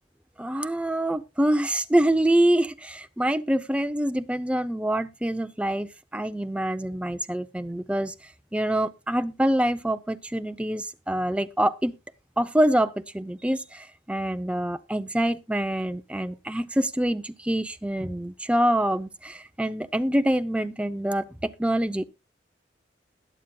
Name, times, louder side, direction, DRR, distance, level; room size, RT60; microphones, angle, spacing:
voice 1, 0.4-8.1 8.5-11.9 12.4-22.1, right 1 dB, 5° right, 0.5 m, -25 dB
21.0 x 7.3 x 2.3 m
head